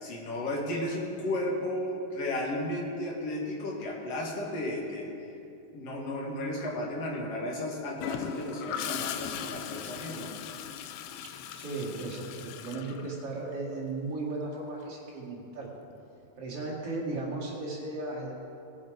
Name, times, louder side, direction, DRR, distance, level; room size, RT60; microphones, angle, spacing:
voice 1, 0.0-5.1 5.7-10.3, left 1 dB, 50° left, -2 dB, 2.5 m, -34 dB
Gurgling / Toilet flush, 8.0-13.7 15.7-16.0, left 9 dB, 80° left, 2.3 m, -39 dB
voice 2, 11.2-15.7 16.4-18.3, right 2 dB, 45° right, -4 dB, 2.7 m, -36 dB
19.0 x 7.6 x 5.1 m, 2.7 s
omnidirectional pair, 4.5 m